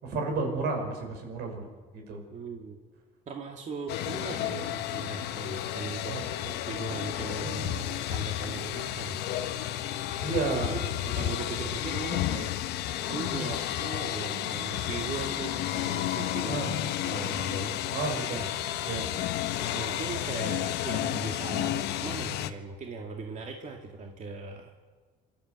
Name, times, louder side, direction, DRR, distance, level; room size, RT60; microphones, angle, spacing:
voice 1, 0.0-1.7 2.1-2.2 6.1-6.5 7.4-7.7 10.2-10.7 11.3-11.4 13.3-13.5 16.5-16.7 17.9-18.4 18.9-19.1, right 3 dB, 80° right, 3 dB, 5.5 m, -32 dB
voice 2, 2.3-2.8 3.3-9.2 10.5-10.8 11.1-12.5 13.1-17.8 18.3-18.6 19.7-24.7, right 4 dB, 45° right, 1 dB, 2.3 m, -39 dB
sound 1, 3.9-22.5, left 12 dB, 80° left, 1.0 m, -32 dB
27.5 x 12.5 x 8.1 m, 1.4 s
cardioid pair, 110°, 17 cm